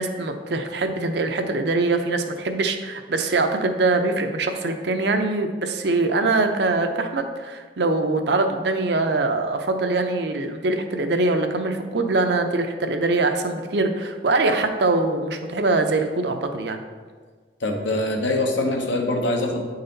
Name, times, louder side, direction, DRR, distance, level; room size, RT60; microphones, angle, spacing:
voice 1, 0.0-16.8, right 2 dB, 65° right, 6 dB, 0.6 m, -23 dB
voice 2, 17.6-19.6, left 2 dB, 85° left, 2 dB, 1.0 m, -23 dB
8.7 x 4.1 x 3.9 m, 1.5 s
head